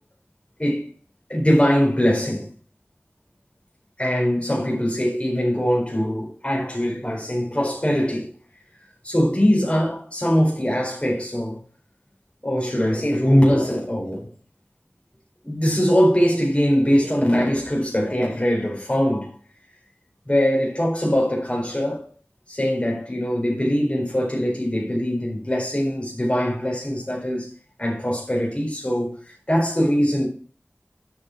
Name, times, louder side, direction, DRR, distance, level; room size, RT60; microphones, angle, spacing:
voice 1, 1.3-2.5 4.0-8.3 9.0-11.6 12.4-14.3 15.4-19.3 20.3-22.1 22.5-27.5 27.8-30.3, equal, 25° left, 4.4 m, -22 dB
11.0 x 7.3 x 4.7 m
wide cardioid pair, 45°, 4 cm